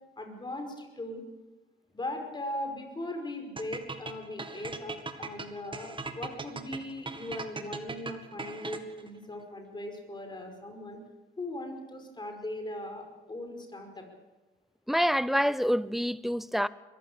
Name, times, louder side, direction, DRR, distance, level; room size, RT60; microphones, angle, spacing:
voice 1, 0.2-1.2 1.9-11.0 11.4-14.1, left 1 dB, 20° left, 5.3 m, -39 dB
sound 1, 3.6-9.1, right 3 dB, 25° right, 2.0 m, -39 dB
voice 2, 14.9-16.7, equal, ahead, 0.7 m, -27 dB
21.5 x 15.5 x 8.4 m
cardioid pair, 90°, 20 cm